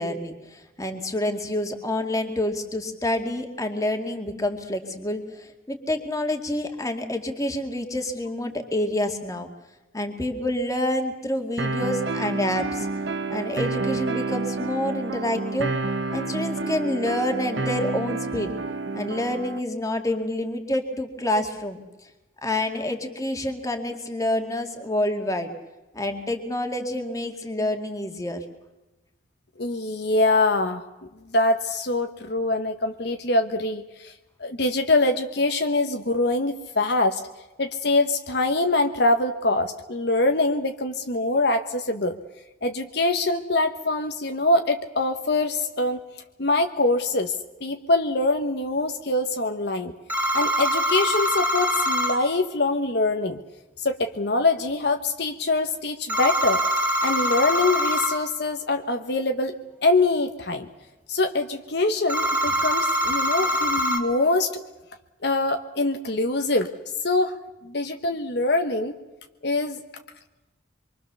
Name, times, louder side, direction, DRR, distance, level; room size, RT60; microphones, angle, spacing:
voice 1, 0.0-9.5 9.9-12.9 13.3-15.7 16.1-18.5 18.9-21.8 22.4-25.5 25.9-28.4, left 1 dB, 15° left, 4 dB, 2.2 m, -28 dB
sound 1, 11.6-19.6, right 3 dB, 70° right, 1.2 m, -29 dB
voice 2, 29.6-30.8 31.3-34.1 34.4-37.2 37.6-42.2 42.6-46.0 46.4-47.3 47.6-49.9 50.3-53.4 53.8-59.6 59.8-60.7 61.1-64.6 65.2-66.7 67.0-67.4 67.6-68.9 69.4-69.8, left 2 dB, 60° left, 6 dB, 1.2 m, -24 dB
sound 2, 50.1-52.2 56.1-58.2 62.1-64.0, equal, 10° right, 3.2 m, -23 dB
26.0 x 24.0 x 6.9 m, 1.1 s
head